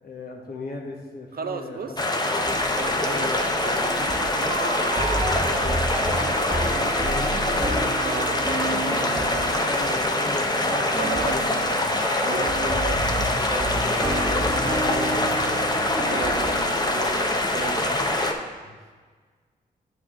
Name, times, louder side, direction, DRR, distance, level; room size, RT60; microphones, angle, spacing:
voice 1, 0.0-2.1 3.1-3.4 5.6-6.1 7.0-7.8 8.8-12.8 13.7-16.0 16.9-17.0 18.6-18.8, left 3 dB, 55° left, 0 dB, 1.4 m, -38 dB
voice 2, 1.3-1.9 2.8-7.5 8.0-8.7 10.9-11.5 12.2-13.0 13.5-14.5 16.1-18.3, right 5 dB, 55° right, 8 dB, 0.7 m, -36 dB
sound 1, 2.0-18.3, left 1 dB, 20° left, 0.9 m, -24 dB
sound 2, 2.5-18.2, right 2 dB, 20° right, 1.3 m, -31 dB
8.9 x 4.8 x 3.7 m, 1.5 s
supercardioid pair, 45°, 19 cm